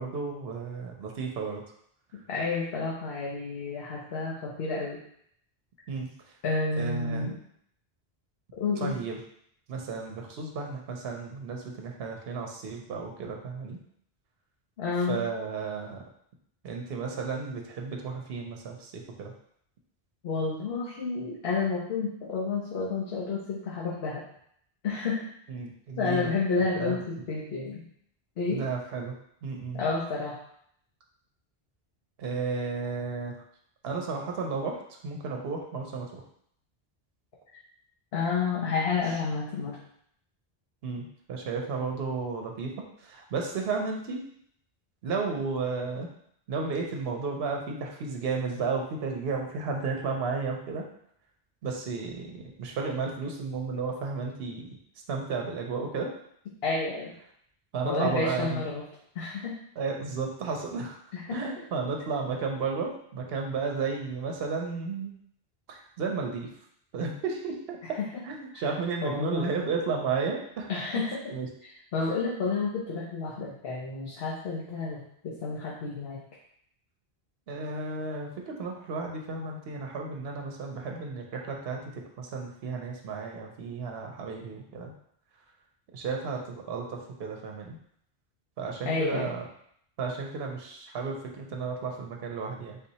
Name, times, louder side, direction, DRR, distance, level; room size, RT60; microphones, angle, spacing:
voice 1, 0.0-1.6 5.9-6.1 6.8-7.3 8.8-9.2 9.7-13.8 15.1-16.0 16.6-19.3 25.5-26.3 26.6-27.0 28.5-29.1 29.4-29.8 32.2-33.4 33.8-36.2 39.1-39.2 40.8-44.3 45.0-46.1 46.5-50.9 51.6-54.8 55.1-56.1 57.7-58.6 59.8-61.0 61.3-65.1 65.7-66.5 66.9-68.0 68.2-70.7 71.0-71.1 71.3-71.5 77.5-84.9 85.9-87.8 88.6-89.4 90.0-92.8, right 4 dB, 75° right, 1 dB, 0.9 m, -33 dB
voice 2, 2.3-5.0 6.4-7.3 8.6-8.9 14.8-15.2 20.2-24.2 24.8-25.3 26.0-27.8 28.4-28.6 29.7-30.4 37.5-37.6 38.1-39.8 56.6-57.1 57.8-58.8 59.1-59.6 61.1-61.5 68.0-68.1 68.5-68.6 69.0-69.4 70.7-71.2 71.9-76.2 88.8-89.3, left 4 dB, 75° left, -5 dB, 1.0 m, -30 dB
3.9 x 2.8 x 4.1 m, 0.68 s
omnidirectional pair, 1.0 m